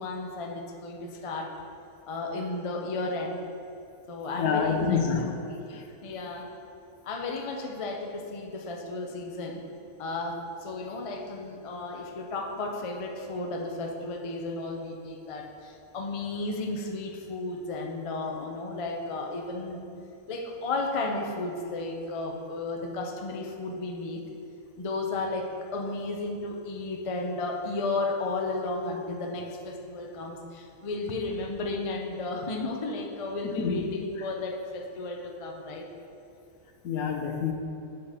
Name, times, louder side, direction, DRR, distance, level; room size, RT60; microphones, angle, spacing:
voice 1, 0.0-1.6 2.1-3.4 4.1-5.0 5.5-5.6 6.0-6.5 7.0-9.6 10.0-19.8 20.3-24.2 24.8-35.9, left 2 dB, 40° left, 1 dB, 0.4 m, -33 dB
voice 2, 4.4-5.3 5.7-5.8 33.6-33.9 36.8-37.5, left 6 dB, 80° left, 4 dB, 1.2 m, -27 dB
8.3 x 4.2 x 4.9 m, 2.6 s
omnidirectional pair, 1.5 m